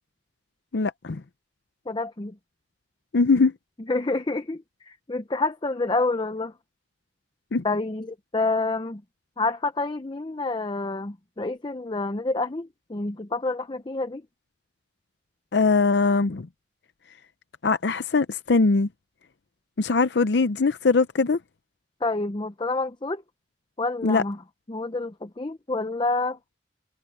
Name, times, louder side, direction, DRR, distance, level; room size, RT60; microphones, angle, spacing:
voice 1, 0.7-1.2 3.1-3.5 7.5-7.6 15.5-16.5 17.6-18.9 19.8-21.4 24.0-24.2, left 4 dB, 75° left, 0.6 m, -21 dB
voice 2, 1.9-2.4 3.9-6.5 7.6-9.0 9.4-14.2 22.0-23.2 23.8-24.4 24.7-26.4, left 3 dB, 25° left, 0.7 m, -28 dB
head